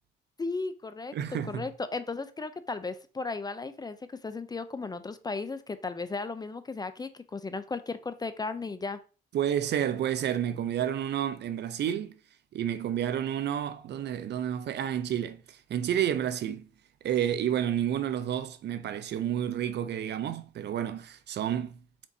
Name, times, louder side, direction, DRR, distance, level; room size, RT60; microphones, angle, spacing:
voice 1, 0.4-9.0, left 3 dB, 20° left, 0.4 m, -35 dB
voice 2, 1.1-1.7 9.3-12.2 12.5-16.7 17.0-21.7, right 10 dB, 60° right, 0.5 m, -30 dB
4.4 x 3.9 x 2.7 m
cardioid pair, 90°, 20 cm